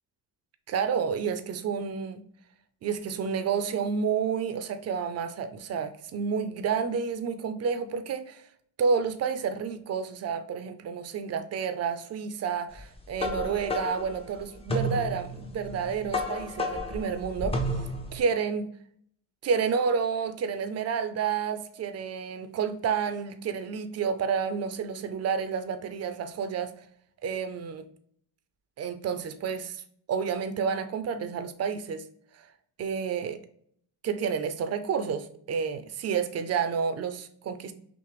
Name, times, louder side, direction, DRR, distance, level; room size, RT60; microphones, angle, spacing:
voice 1, 0.7-2.2 2.8-8.4 8.8-17.6 18.1-18.7 19.4-26.7 27.2-27.9 28.8-29.8 30.1-32.0 32.3-32.5 32.8-33.4 34.0-37.7, right 6 dB, 35° right, 10 dB, 0.5 m, -30 dB
sound 1, 12.8-18.2, left 1 dB, 15° left, 0.5 m, -32 dB
5.8 x 2.1 x 3.2 m, 0.63 s
cardioid pair, 135°, 43 cm